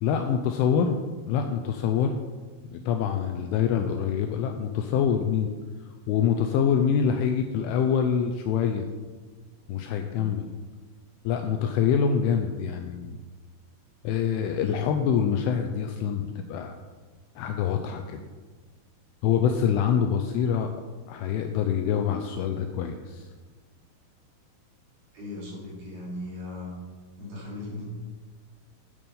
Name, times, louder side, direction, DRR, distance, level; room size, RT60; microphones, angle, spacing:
voice 1, 0.0-1.0 1.3-2.2 2.6-5.5 6.1-8.9 9.7-10.5 11.2-13.2 14.0-16.8 17.4-18.2 19.2-20.7 21.1-23.3, left 7 dB, 85° left, 5 dB, 2.8 m, -25 dB
voice 2, 25.1-26.7 27.2-27.9, left 2 dB, 45° right, -6 dB, 3.9 m, -38 dB
9.4 x 8.6 x 5.4 m, 1.3 s
omnidirectional pair, 6.0 m